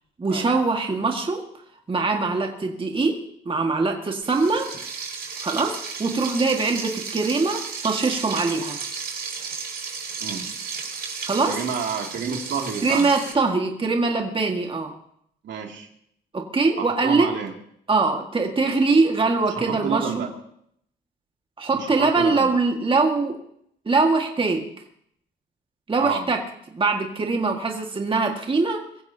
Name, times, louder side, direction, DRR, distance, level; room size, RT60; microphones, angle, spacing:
voice 1, 0.2-1.4 1.9-3.2 3.5-4.7 5.4-8.8 11.2-11.6 12.8-14.9 16.3-17.3 17.9-20.3 21.6-23.4 23.9-24.7 25.9-26.4 26.7-28.8, right 3 dB, 25° right, 2 dB, 1.9 m, -22 dB
Frying (food), 4.2-13.3, right 5 dB, 50° right, 6.4 m, -33 dB
voice 2, 11.5-13.1 15.4-15.9 16.8-17.5 19.5-20.3 21.7-22.5 26.0-26.3, right 6 dB, 70° right, 2 dB, 2.7 m, -29 dB
23.0 x 15.0 x 2.9 m, 0.70 s
cardioid pair, 90°, 20 cm